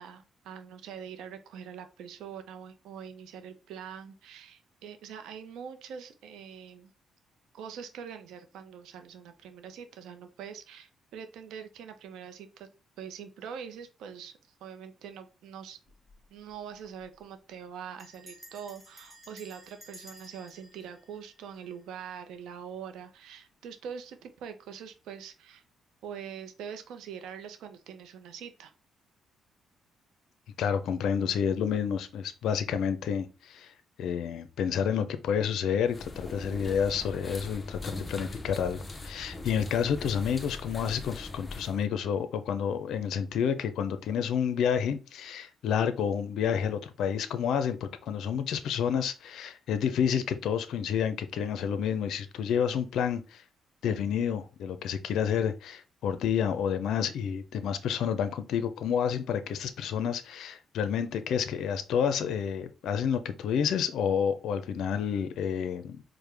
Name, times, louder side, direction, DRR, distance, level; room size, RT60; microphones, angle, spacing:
voice 1, 0.0-6.9 7.5-12.7 13.0-14.3 14.6-15.8 16.3-25.6 26.0-28.7, right 7 dB, 85° right, 0.6 m, -43 dB
Bell, 15.9-16.2 16.5-16.6 16.8-17.2 18.0-22.1, equal, 10° right, 1.4 m, -53 dB
voice 2, 30.6-33.7 34.0-53.4 53.8-66.0, left 7 dB, 75° left, 0.5 m, -29 dB
sound 1, 35.9-41.8, left 2 dB, 25° left, 0.7 m, -41 dB
4.7 x 2.1 x 3.3 m
cardioid pair, 90°, 0 cm